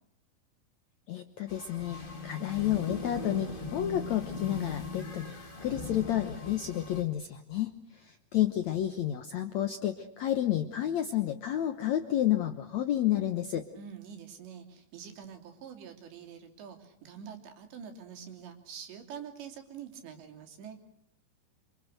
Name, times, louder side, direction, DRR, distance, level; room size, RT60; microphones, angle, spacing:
voice 1, 1.1-13.7, left 12 dB, 80° left, 8 dB, 1.6 m, -30 dB
sound 1, 1.5-7.0, left 3 dB, 25° left, 1.1 m, -39 dB
voice 2, 13.8-20.8, right 7 dB, 85° right, 4 dB, 5.3 m, -46 dB
27.5 x 27.0 x 6.6 m, 0.67 s
omnidirectional pair, 4.9 m